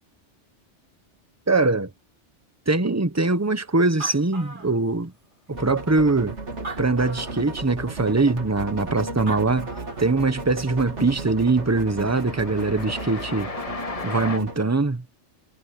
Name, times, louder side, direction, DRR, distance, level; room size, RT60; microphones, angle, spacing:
voice 1, 1.5-1.9 2.7-5.1 5.5-6.4 6.8-9.7 10.0-13.5 14.0-15.0, right 3 dB, 15° right, 1.0 m, -22 dB
Animal, 3.6-3.7 3.8-5.3 5.9-6.0 6.5-7.5 9.0-9.1 9.3-10.2, right 3 dB, 45° right, 2.3 m, -38 dB
sound 1, 5.5-14.6, right 3 dB, 70° right, 2.7 m, -35 dB
Train, 8.7-9.2 9.5-14.4, left 4 dB, 30° left, 1.1 m, -37 dB
omnidirectional pair, 1.2 m